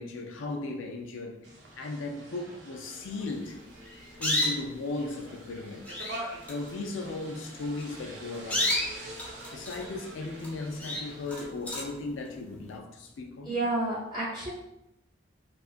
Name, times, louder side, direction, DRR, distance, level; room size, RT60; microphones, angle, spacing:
voice 1, 0.0-1.4 1.8-3.6 4.2-5.8 6.5-8.7 9.5-13.6, left 2 dB, 85° left, 0.4 m, -36 dB
sound 1, 1.4-11.5, right 1 dB, 75° right, 0.6 m, -46 dB
sound 2, 3.8-4.8 5.5-5.6 5.8-6.2 6.4-6.7 7.6-7.8 8.3-10.0 10.4-10.5 10.8-12.0, left 1 dB, 10° left, 0.3 m, -31 dB
voice 2, 13.4-14.5, right 2 dB, 25° right, 0.7 m, -30 dB
2.8 x 2.3 x 2.4 m
head